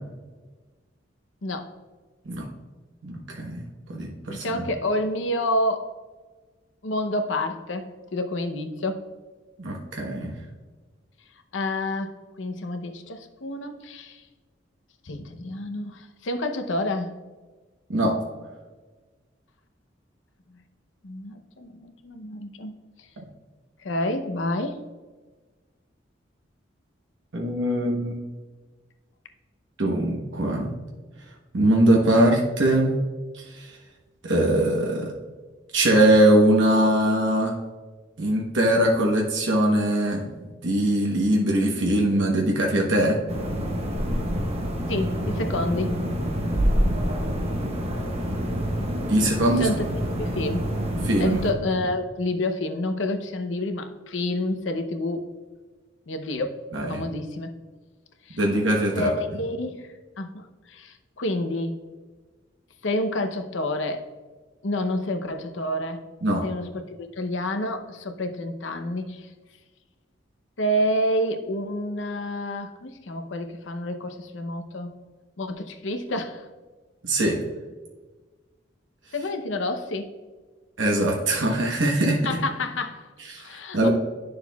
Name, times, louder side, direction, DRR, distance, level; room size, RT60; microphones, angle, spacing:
voice 1, 3.0-4.7 9.6-10.3 17.9-18.2 23.2-23.3 27.3-28.2 29.8-30.7 31.5-33.0 33.3-33.7 34.2-35.1 35.7-37.6 38.2-40.2 40.6-43.2 49.1-49.7 51.0-51.4 56.7-57.0 58.4-59.1 66.2-66.4 77.0-77.4 80.8-82.2 83.3-83.9, right 1 dB, 80° right, 0 dB, 1.0 m, -22 dB
voice 2, 4.3-5.9 6.8-9.0 11.5-14.2 15.0-17.1 21.0-22.7 23.8-24.8 44.9-45.9 49.6-50.7 51.2-55.3 56.1-56.5 56.9-57.5 58.3-58.4 59.0-61.7 62.8-64.0 64.6-66.0 66.4-69.3 70.6-75.0 75.4-76.5 79.1-80.1 82.2-83.1 83.4-83.9, left 1 dB, 85° left, 7 dB, 0.7 m, -29 dB
sound 1, 43.3-51.5, equal, 35° right, 0.9 m, -27 dB
10.0 x 6.6 x 2.3 m, 1.3 s
head